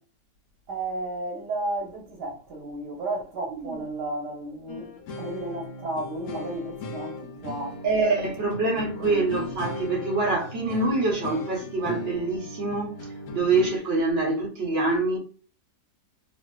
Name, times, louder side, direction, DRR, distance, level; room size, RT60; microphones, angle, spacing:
voice 1, 0.7-8.0 8.8-9.4, right 2 dB, 80° right, 1.5 m, -33 dB
sound 1, 4.7-13.8, left 2 dB, 65° left, 0.8 m, -37 dB
voice 2, 7.8-15.2, right 3 dB, 45° right, 1.4 m, -25 dB
3.2 x 2.7 x 2.3 m
omnidirectional pair, 1.8 m